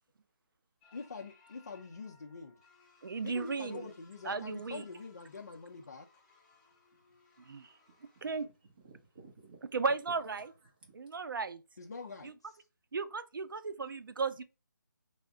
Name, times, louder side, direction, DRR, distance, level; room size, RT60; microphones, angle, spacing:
sound 1, 0.8-8.4, left 4 dB, 20° left, 0.8 m, -65 dB
voice 1, 0.9-2.6 3.2-6.1 11.8-12.5, left 4 dB, 50° left, 0.5 m, -45 dB
voice 2, 3.0-3.9 4.2-4.8 7.4-7.8 8.2-8.5 9.7-10.5 10.9-11.6 12.2-12.3 12.9-14.4, right 4 dB, 85° right, 0.5 m, -35 dB
voice 3, 7.9-9.7 10.4-10.5 10.8-11.1, right 4 dB, 30° right, 0.9 m, -58 dB
3.4 x 2.1 x 3.6 m
hypercardioid pair, 175°, 11 cm